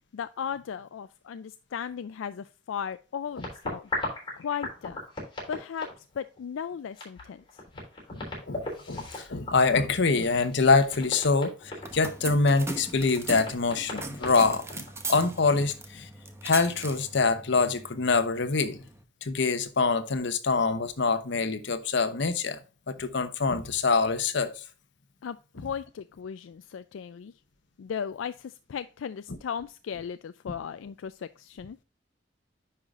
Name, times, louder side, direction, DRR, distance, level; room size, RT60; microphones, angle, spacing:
voice 1, 0.1-3.9 4.4-5.0 5.5-7.6 25.2-27.3 27.8-31.8, left 7 dB, 85° left, 0.4 m, -36 dB
sound 1, 3.3-6.4 6.7-6.8 7.0-12.1 12.7-12.8 13.3-15.7, left 2 dB, 25° left, 3.6 m, -37 dB
voice 2, 8.5-16.1 16.4-18.8 19.2-22.6 22.9-24.6, left 4 dB, 65° left, 1.0 m, -25 dB
sound 2, 11.6-19.0, right 3 dB, 15° right, 1.0 m, -40 dB
9.9 x 5.7 x 2.4 m
head